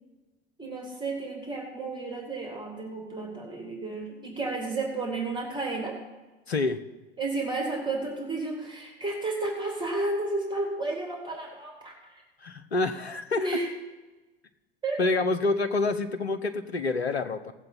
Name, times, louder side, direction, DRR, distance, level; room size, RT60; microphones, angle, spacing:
voice 1, 0.6-5.9 7.2-11.9 13.3-13.7 14.8-15.0, right 2 dB, 15° right, 1 dB, 2.8 m, -32 dB
voice 2, 6.5-6.8 12.4-13.6 15.0-17.5, left 3 dB, 80° left, 9 dB, 0.9 m, -27 dB
17.5 x 7.7 x 4.1 m, 1.1 s
figure-of-eight pair, 80°, 31 cm